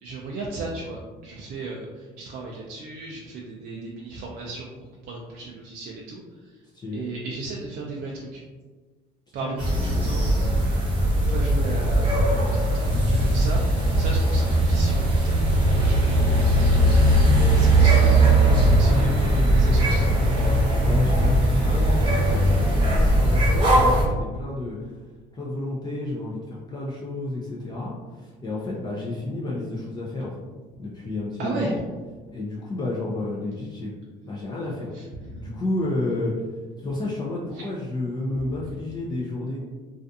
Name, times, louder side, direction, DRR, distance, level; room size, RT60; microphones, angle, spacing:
voice 1, 0.0-4.7 5.1-6.2 6.9-8.4 9.3-10.2 11.3-13.6 14.0-15.3 15.7-16.6 17.5-18.4 18.6-20.3 31.4-31.7 34.9-35.4 37.6-37.7, right 3 dB, 55° right, -2 dB, 0.4 m, -35 dB
voice 2, 9.4-10.6 20.8-21.4 21.6-24.9 25.3-30.3 30.8-31.8 32.3-33.9 34.2-34.9 35.3-36.3 36.8-39.6, left 2 dB, 25° left, -5 dB, 0.4 m, -31 dB
sound 1, 9.6-24.0, right 1 dB, 25° right, 0.8 m, -19 dB
2.4 x 2.3 x 2.6 m, 1.3 s
cardioid pair, 115°, 18 cm